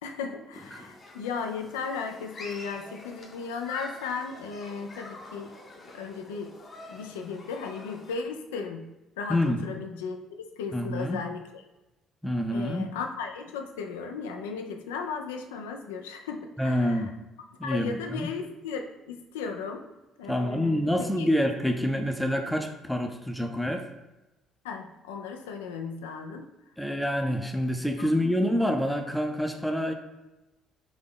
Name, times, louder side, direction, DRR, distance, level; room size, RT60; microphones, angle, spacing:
voice 1, 0.0-5.6 5.8-6.5 6.9-8.9 9.2-11.6 12.5-17.1 17.6-19.8 20.2-20.8 21.2-21.3 24.6-26.5 28.0-28.1, left 5 dB, 75° left, 5 dB, 0.4 m, -36 dB
Human group actions, 0.5-8.2, left 2 dB, 40° left, 0.8 m, -46 dB
voice 2, 10.7-11.2 12.2-12.9 16.6-17.1 17.6-18.3 20.3-23.8 26.8-29.9, equal, ahead, 4 dB, 0.5 m, -27 dB
4.0 x 2.9 x 3.7 m, 1.0 s
figure-of-eight pair, 50°, 0 cm